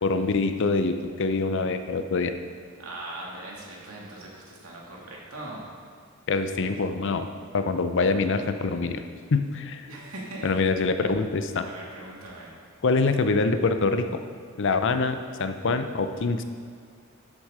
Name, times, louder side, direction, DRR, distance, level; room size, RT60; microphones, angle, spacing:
voice 1, 0.0-2.3 6.3-7.3 7.5-9.0 9.3-9.9 10.4-11.7 12.8-14.1 14.6-16.4, left 3 dB, 60° left, 9 dB, 0.6 m, -25 dB
voice 2, 2.8-5.6 9.9-10.7 11.6-12.5, right 2 dB, 90° right, -3 dB, 2.4 m, -40 dB
12.0 x 6.3 x 4.9 m, 2.1 s
head